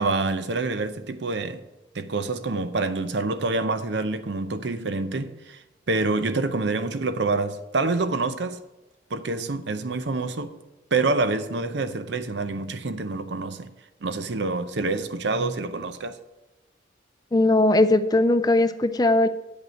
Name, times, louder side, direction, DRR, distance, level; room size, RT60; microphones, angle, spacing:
voice 1, 0.0-1.6 1.9-5.6 5.9-8.6 9.1-10.6 10.9-13.7 14.0-16.2, right 3 dB, 70° right, 0.7 m, -27 dB
voice 2, 17.3-19.3, left 2 dB, 20° left, 0.4 m, -19 dB
9.1 x 5.3 x 6.3 m
head